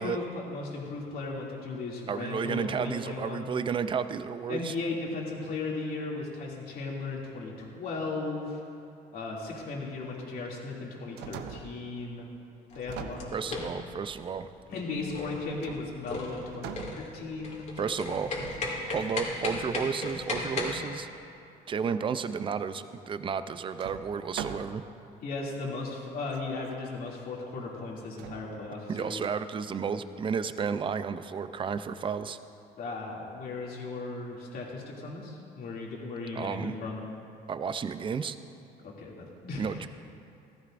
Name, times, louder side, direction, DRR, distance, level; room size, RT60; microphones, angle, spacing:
voice 1, 0.0-3.4 4.5-8.6 9.1-12.3 12.7-13.6 14.7-17.7 25.2-29.2 32.8-37.0 38.8-39.9, left 3 dB, 60° left, -3 dB, 2.6 m, -36 dB
voice 2, 2.1-4.7 13.3-14.5 17.8-18.4 18.9-21.1 21.7-24.8 28.9-32.4 36.3-36.7 37.5-38.4 39.6-39.9, right 6 dB, 30° right, 12 dB, 0.5 m, -32 dB
sound 1, 10.9-11.9 12.8-13.9 15.6-16.2 16.5-17.6 18.4-19.3 22.8-22.9 23.8-25.0 25.7-25.8 26.2-26.8 28.2-28.4, right 8 dB, 85° right, 0.7 m, -43 dB
sound 2, 12.7-20.8, left 2 dB, 45° left, 2.3 m, -36 dB
14.5 x 14.5 x 2.6 m, 2.6 s
cardioid pair, 110°, 17 cm